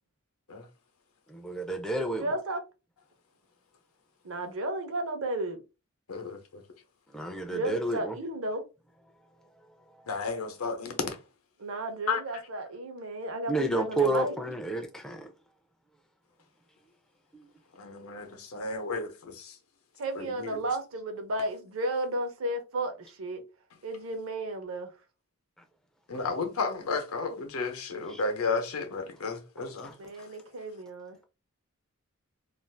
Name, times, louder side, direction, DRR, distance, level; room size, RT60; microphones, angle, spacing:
voice 1, 1.5-2.2 7.2-8.1 13.5-14.8, right 1 dB, 5° left, 0.3 m, -29 dB
voice 2, 2.1-2.6 4.2-5.6 7.5-8.6 11.6-14.4 20.0-23.4 23.8-24.9 30.0-31.2, right 1 dB, 65° right, 0.6 m, -33 dB
voice 3, 6.1-6.6 10.1-11.2 12.1-12.2 17.8-19.6 20.2-20.7 26.1-30.3, left 4 dB, 85° left, 0.8 m, -33 dB
2.5 x 2.4 x 3.3 m
head